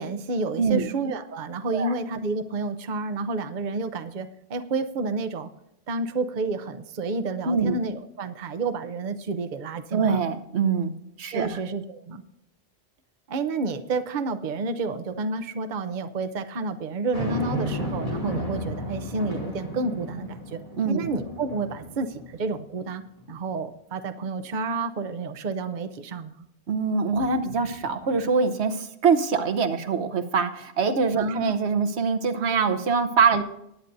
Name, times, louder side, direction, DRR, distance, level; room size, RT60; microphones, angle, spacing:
voice 1, 0.0-5.5 5.9-10.2 11.3-12.2 13.3-20.6 20.9-23.0 23.3-26.5 31.1-31.5 33.3-33.4, right 3 dB, 50° right, 9 dB, 0.8 m, -30 dB
voice 2, 0.6-0.9 1.7-1.9 7.4-7.8 9.9-10.9 11.2-11.6 20.8-21.1 26.7-33.4, right 5 dB, 85° right, 9 dB, 1.2 m, -24 dB
sound 1, 17.1-22.7 23.2-23.3 27.1-28.2, equal, 35° left, 2.6 m, -33 dB
19.5 x 9.1 x 2.6 m, 0.82 s
omnidirectional pair, 1.1 m